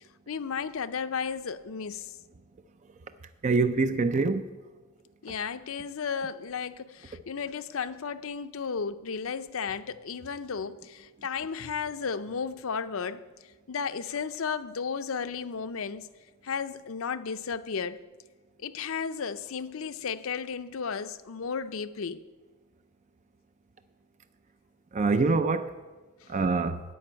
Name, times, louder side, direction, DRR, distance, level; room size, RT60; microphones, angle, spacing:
voice 1, 0.0-2.1 5.2-13.2 13.7-16.1 16.4-18.0 18.6-22.2 26.2-26.3, left 6 dB, 65° left, 0.5 m, -34 dB
voice 2, 3.4-4.5 24.9-25.7 26.3-26.8, right 3 dB, 35° right, 0.4 m, -25 dB
14.0 x 5.3 x 8.8 m
head